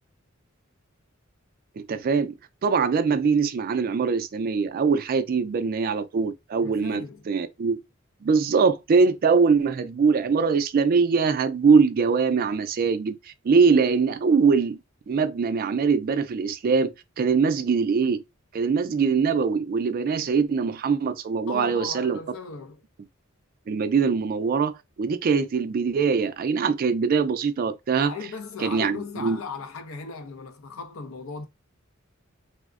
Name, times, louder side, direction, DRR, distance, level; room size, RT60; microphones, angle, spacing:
voice 1, 1.8-2.3 2.6-7.8 8.2-13.2 13.4-14.8 15.1-18.2 18.5-22.2 23.7-24.7 25.0-28.1 28.6-29.4, right 5 dB, 45° right, 0.3 m, -22 dB
voice 2, 6.6-7.3 21.5-22.8 28.0-31.5, left 5 dB, 85° left, 0.6 m, -37 dB
3.4 x 2.0 x 2.4 m
head